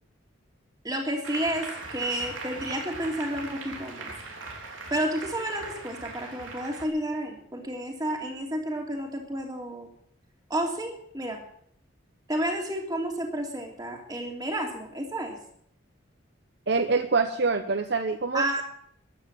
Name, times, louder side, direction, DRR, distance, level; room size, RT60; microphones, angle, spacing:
voice 1, 0.8-4.1 4.9-9.9 10.5-11.4 12.3-15.4 18.3-18.6, right 1 dB, 20° right, 1 dB, 3.1 m, -31 dB
Applause, 1.2-6.9, right 3 dB, 85° right, 3.3 m, -40 dB
voice 2, 16.7-18.6, right 4 dB, 55° right, 8 dB, 0.9 m, -25 dB
14.5 x 11.0 x 7.6 m, 0.66 s
head